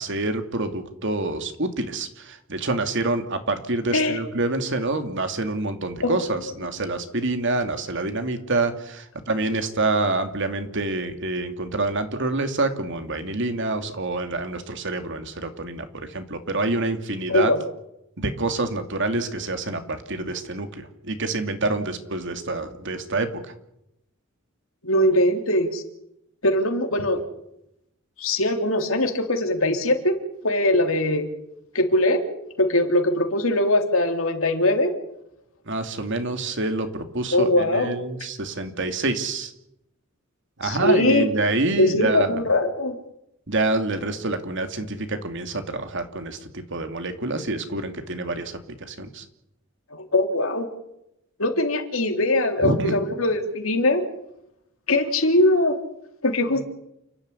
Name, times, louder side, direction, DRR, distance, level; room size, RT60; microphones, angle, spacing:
voice 1, 0.0-17.5 18.2-23.3 35.7-39.5 40.6-42.4 43.5-48.5 48.8-49.2 52.6-53.0, right 2 dB, 65° right, 8 dB, 2.7 m, -27 dB
voice 2, 3.9-4.2 6.0-6.2 17.3-17.7 24.8-25.8 26.4-27.2 28.2-30.2 30.4-31.3 31.7-32.2 32.6-34.9 37.3-37.9 40.6-41.3 41.8-43.0 49.9-50.7 51.4-54.0 54.9-55.8 56.2-56.6, left 1 dB, 75° left, 5 dB, 3.7 m, -21 dB
29.5 x 12.5 x 9.8 m, 0.81 s
head